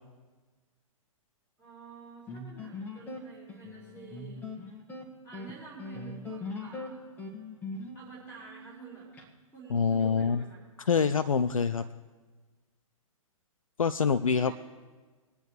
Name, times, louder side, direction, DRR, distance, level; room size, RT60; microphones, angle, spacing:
voice 1, 1.6-4.5 5.2-7.0 7.9-9.1 9.5-10.6 14.2-14.5, right 4 dB, 10° right, -10 dB, 4.3 m, -49 dB
sound 1, 2.3-9.3, left 2 dB, 10° left, 1.6 m, -41 dB
voice 2, 9.7-10.4 10.9-11.9 13.8-14.5, left 6 dB, 70° left, 10 dB, 0.5 m, -25 dB
21.5 x 9.7 x 3.3 m, 1.3 s
figure-of-eight pair, 115°, 18 cm